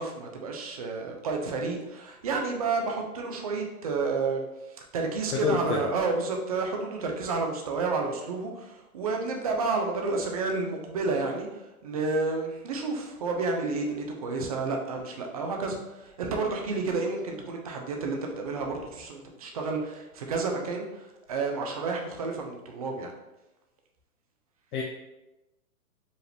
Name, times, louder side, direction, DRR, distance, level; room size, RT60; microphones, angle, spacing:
voice 1, 0.0-23.1, right 3 dB, 25° right, 2 dB, 0.4 m, -30 dB
voice 2, 5.3-5.9 24.7-24.8, left 4 dB, 80° left, 0 dB, 0.7 m, -27 dB
4.9 x 2.5 x 3.3 m, 0.98 s
hypercardioid pair, 140°, 44 cm